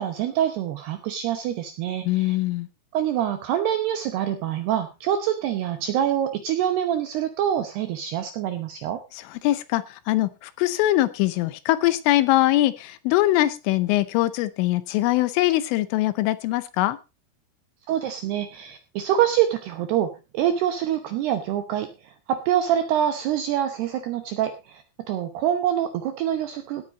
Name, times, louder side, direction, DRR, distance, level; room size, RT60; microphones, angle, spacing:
voice 1, 0.0-2.4 2.9-9.0 17.9-26.8, right 10 dB, 80° right, 8 dB, 2.4 m, -25 dB
voice 2, 2.0-2.7 9.1-17.0, left 16 dB, 80° left, 15 dB, 3.2 m, -22 dB
17.5 x 8.6 x 4.0 m, 0.28 s
omnidirectional pair, 6.0 m